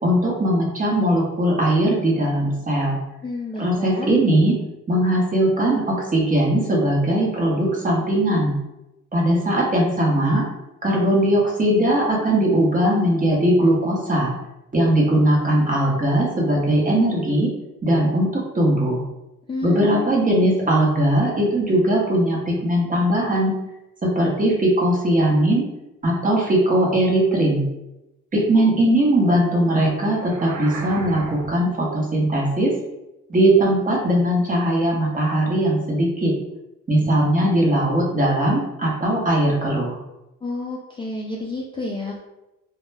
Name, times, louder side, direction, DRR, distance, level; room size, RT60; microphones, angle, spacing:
voice 1, 0.0-3.0 3.6-4.5 4.9-8.6 9.1-10.4 10.8-14.3 14.7-17.5 17.8-19.0 19.6-23.5 24.0-25.6 26.0-27.6 28.3-32.7 33.3-36.3 36.9-40.0, right 1 dB, 25° right, -3 dB, 0.8 m, -19 dB
voice 2, 3.2-4.1 19.5-20.1 40.4-42.2, left 2 dB, 15° left, -3 dB, 0.3 m, -30 dB
sound 1, 30.1-31.7, right 4 dB, 75° right, 0.4 m, -35 dB
2.2 x 2.0 x 3.2 m, 0.95 s
cardioid pair, 90°, 30 cm